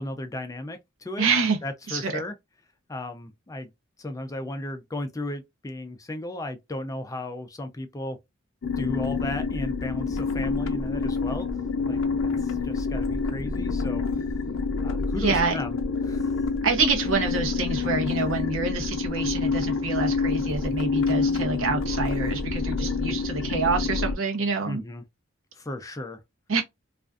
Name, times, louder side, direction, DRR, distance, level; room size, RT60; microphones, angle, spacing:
voice 1, 0.0-1.3 1.6-2.4 2.9-3.7 4.0-8.2 8.8-11.5 11.9-14.0 14.8-16.3 24.6-25.0 25.6-26.2, left 1 dB, 15° left, 0.4 m, -35 dB
voice 2, 1.2-1.6 1.9-2.1 15.2-15.5 16.6-24.8 26.5-26.6, right 4 dB, 80° right, 0.7 m, -26 dB
sound 1, 8.6-24.1, left 4 dB, 80° left, 0.5 m, -27 dB
2.4 x 2.2 x 2.4 m
head